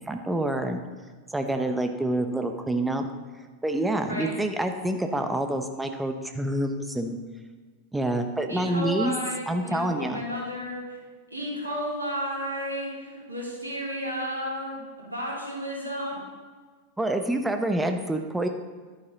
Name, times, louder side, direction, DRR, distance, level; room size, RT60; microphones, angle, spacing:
voice 1, 0.1-0.8 1.3-3.1 3.6-7.2 7.9-9.1 9.5-10.2 17.0-18.5, right 1 dB, 5° right, 6 dB, 1.0 m, -27 dB
voice 2, 4.1-4.4 8.5-11.0 11.3-16.2, equal, 80° right, -4 dB, 3.0 m, -33 dB
11.0 x 9.8 x 3.9 m, 1.5 s
figure-of-eight pair, 90°, 0 cm